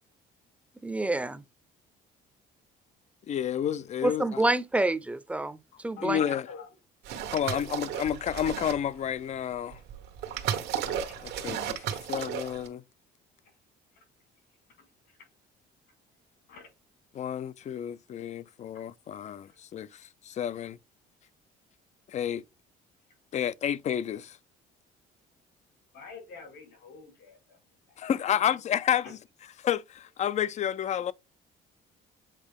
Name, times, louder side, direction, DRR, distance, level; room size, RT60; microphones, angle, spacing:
voice 1, 0.8-1.4 4.0-5.6 5.8-6.2, right 2 dB, 5° right, 0.6 m, -27 dB
voice 2, 3.3-4.4 6.0-6.5 7.3-9.8 10.8-11.7 12.1-12.8 17.1-19.9 20.2-20.8 22.1-22.4 23.3-24.4 28.0-29.2 29.6-31.1, left 9 dB, 45° left, 0.5 m, -30 dB
voice 3, 6.0-6.7 11.6-12.0 14.0-14.1 15.1-15.2 16.5-16.7 19.5-19.6 25.9-27.6 27.9-28.0 28.3-28.4, left 5 dB, 85° left, 4.7 m, -46 dB
sound 1, 7.0-9.0 9.7-12.7, right 9 dB, 80° right, 1.3 m, -34 dB
7.4 x 3.9 x 3.6 m
cardioid pair, 110°, 17 cm